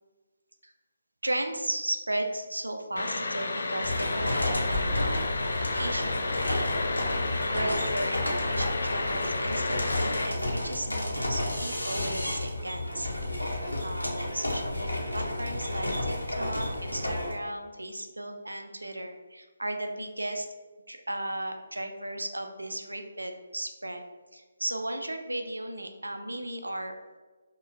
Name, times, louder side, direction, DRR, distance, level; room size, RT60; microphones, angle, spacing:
voice 1, 1.2-7.1 7.4-20.5 20.9-24.0 24.3-26.9, right 1 dB, 75° right, 5 dB, 0.4 m, -35 dB
sound 1, 3.0-10.3, left 3 dB, 55° left, 0.3 m, -31 dB
sound 2, 3.8-17.3, left 1 dB, 85° left, 0.8 m, -31 dB
4.8 x 2.3 x 2.5 m, 1.3 s
figure-of-eight pair, 145°, 0 cm